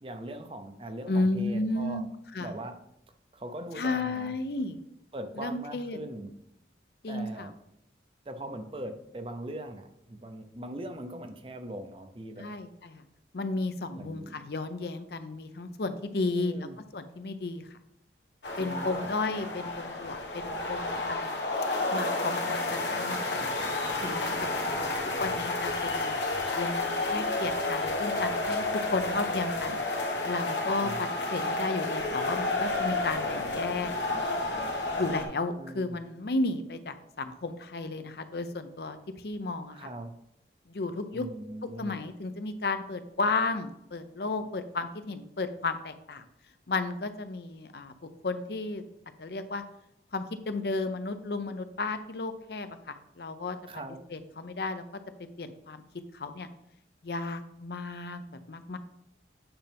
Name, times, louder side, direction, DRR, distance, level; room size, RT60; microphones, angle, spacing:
voice 1, 0.0-2.0 2.4-2.8 3.3-4.3 5.1-6.4 7.1-7.5 8.3-12.5 14.0-14.5 16.2-16.8 18.6-19.1 24.7-25.4 30.8-31.0 35.6-35.9 39.7-40.1 41.1-42.0 53.6-54.0, right 1 dB, 30° right, 7 dB, 0.6 m, -41 dB
voice 2, 1.1-2.1 2.3-2.5 3.7-4.8 5.4-6.0 7.0-7.5 12.4-13.0 13.3-17.8 18.6-21.4 21.9-23.5 24.0-24.8 25.2-26.2 26.5-29.8 30.2-33.9 34.9-39.9 40.7-41.3 41.8-46.2 46.7-48.8 49.2-49.6 50.1-53.6 54.1-54.8 55.4-55.8 56.1-56.5 57.0-58.8, left 3 dB, 65° left, 9 dB, 0.6 m, -33 dB
sound 1, 18.4-35.2, left 2 dB, 85° left, 1.5 m, -31 dB
8.9 x 5.6 x 3.5 m, 0.78 s
head